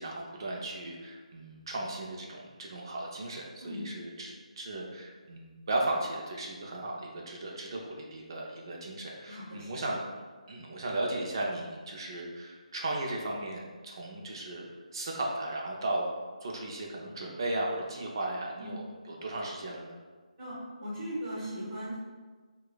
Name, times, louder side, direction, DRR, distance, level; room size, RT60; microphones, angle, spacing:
voice 1, 0.0-10.0 10.5-16.1 16.4-20.0, right 2 dB, 35° right, -1 dB, 0.5 m, -36 dB
voice 2, 9.3-10.0 18.6-18.8 20.4-21.9, equal, 20° right, -9 dB, 1.2 m, -39 dB
4.8 x 2.3 x 2.3 m, 1.4 s
hypercardioid pair, 175°, 4 cm